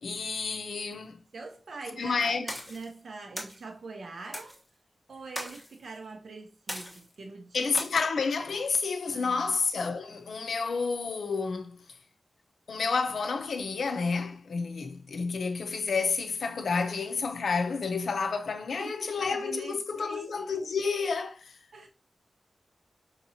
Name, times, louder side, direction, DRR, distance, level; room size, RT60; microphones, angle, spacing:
voice 1, 0.0-1.2 2.0-2.5 7.5-11.7 12.7-21.5, left 4 dB, 90° left, 0.6 m, -30 dB
voice 2, 1.3-4.6 5.1-7.7 9.1-9.5 18.8-20.5 21.7-21.9, right 3 dB, 80° right, 0.7 m, -44 dB
sound 1, 2.5-2.9 3.4-3.6 4.3-4.6 5.4-5.7 6.7-7.2 7.8-7.9, left 1 dB, 15° left, 1.1 m, -38 dB
5.3 x 2.8 x 2.8 m
wide cardioid pair, 95°, 0 cm